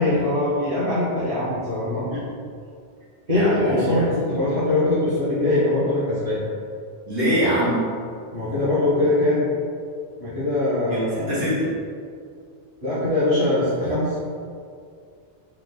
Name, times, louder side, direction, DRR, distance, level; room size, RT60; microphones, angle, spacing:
voice 1, 0.0-2.1 3.3-6.4 8.3-9.5 10.2-11.3 12.8-14.1, left 2 dB, 30° right, -14 dB, 1.3 m, -22 dB
voice 2, 3.3-4.0 7.1-7.8 10.9-11.7, equal, 80° right, -10 dB, 1.8 m, -23 dB
3.8 x 3.1 x 3.8 m, 2.3 s
omnidirectional pair, 1.2 m